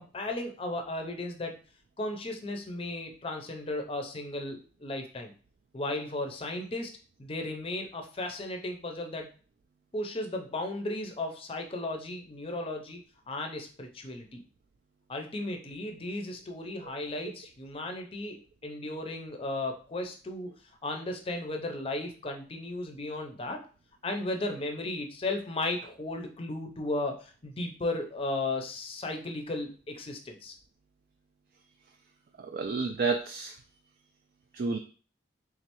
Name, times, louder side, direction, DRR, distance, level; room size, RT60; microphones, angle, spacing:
voice 1, 0.0-1.6 2.0-5.3 5.7-6.9 7.2-9.3 9.9-13.0 13.3-14.4 15.1-18.4 18.6-20.5 20.8-23.6 24.0-30.6, left 2 dB, 30° left, 3 dB, 0.5 m, -35 dB
voice 2, 32.4-33.5 34.5-34.8, right 4 dB, 50° right, 5 dB, 0.3 m, -30 dB
3.7 x 3.1 x 3.0 m, 0.38 s
head